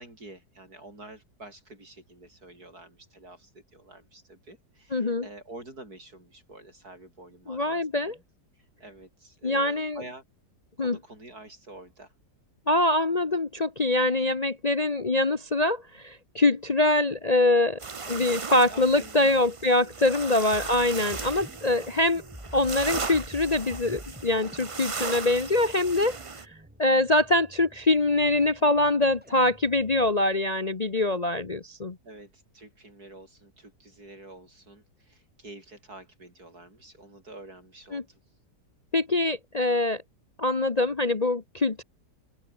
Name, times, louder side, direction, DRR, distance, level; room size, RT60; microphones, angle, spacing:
voice 1, 0.0-8.2 8.5-10.2 10.8-12.1 18.6-19.4 20.2-20.5 30.9-31.2 32.0-38.2, right 2 dB, 65° right, 8.5 m, -48 dB
voice 2, 4.9-5.3 7.5-8.2 9.4-10.0 10.8-11.0 12.7-22.2 22.5-26.2 26.8-32.0 37.9-38.0 38.9-40.0 40.4-41.8, left 2 dB, 30° left, 1.0 m, -24 dB
sound 1, 17.8-26.5, right 4 dB, 30° right, 0.6 m, -37 dB
sound 2, 20.5-30.2, equal, 5° right, 5.0 m, -48 dB
open air
omnidirectional pair, 1.8 m